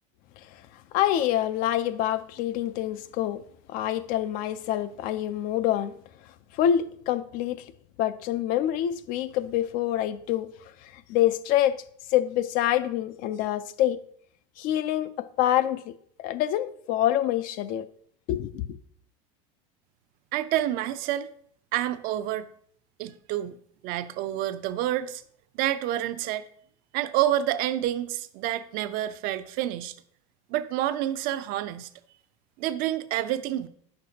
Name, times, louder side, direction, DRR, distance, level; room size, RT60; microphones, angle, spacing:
voice 1, 0.9-3.4 3.7-6.0 6.5-7.6 8.0-10.5 10.8-11.8 12.1-14.0 14.6-15.9 16.2-17.9 18.3-18.6, left 12 dB, 55° left, 0.5 m, -26 dB
voice 2, 20.3-21.3 21.7-22.5 23.0-23.6 23.8-25.2 25.5-26.4 26.9-29.9 30.5-31.9 32.6-33.7, right 13 dB, 55° right, 0.6 m, -28 dB
9.5 x 6.6 x 2.8 m
supercardioid pair, 120°, 18 cm